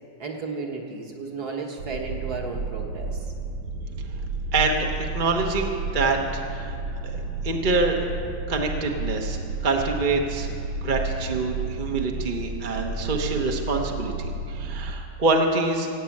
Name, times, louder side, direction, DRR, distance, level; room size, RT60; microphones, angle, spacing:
voice 1, 0.2-3.3 7.2-7.3, right 4 dB, 50° right, 1 dB, 1.9 m, -34 dB
sound 1, 1.8-14.9, right 3 dB, 70° right, 1.5 m, -32 dB
voice 2, 4.5-6.8 7.0-8.0 8.5-10.5 10.8-15.9, right 3 dB, 30° right, 1 dB, 0.9 m, -26 dB
16.0 x 8.4 x 8.5 m, 2.6 s
omnidirectional pair, 2.3 m